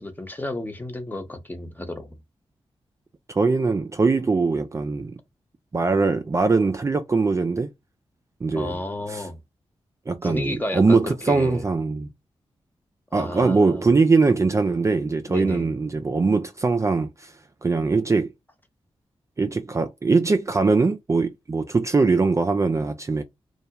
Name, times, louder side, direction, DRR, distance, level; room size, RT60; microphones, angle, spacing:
voice 1, 0.0-2.2 8.5-9.4 10.2-11.7 13.1-13.9 15.3-15.7, left 1 dB, 15° left, 0.8 m, -32 dB
voice 2, 3.3-5.2 5.7-7.7 8.4-8.8 9.1-9.3 10.1-12.1 13.1-17.3 17.6-18.3 19.4-23.2, right 4 dB, 30° right, 0.3 m, -21 dB
2.3 x 2.1 x 2.8 m
cardioid pair, 50°, 11 cm